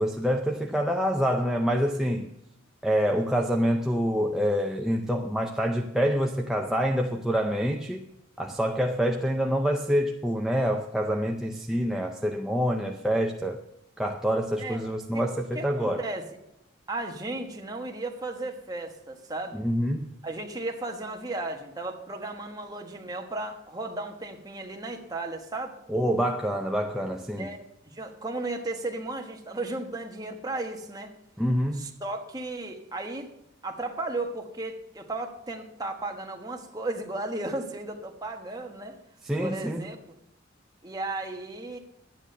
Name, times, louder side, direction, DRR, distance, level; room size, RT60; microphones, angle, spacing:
voice 1, 0.0-2.3 2.8-8.0 8.4-13.6 14.0-16.0 19.5-20.1 25.9-27.5 31.4-31.8 39.2-39.8, equal, ahead, 0.6 m, -26 dB
voice 2, 15.5-16.2 16.9-19.6 20.2-25.8 27.4-27.6 27.8-31.1 32.0-33.3 33.6-39.0 39.4-40.0 40.8-41.8, right 2 dB, 20° right, 1.3 m, -35 dB
11.5 x 9.9 x 6.7 m
head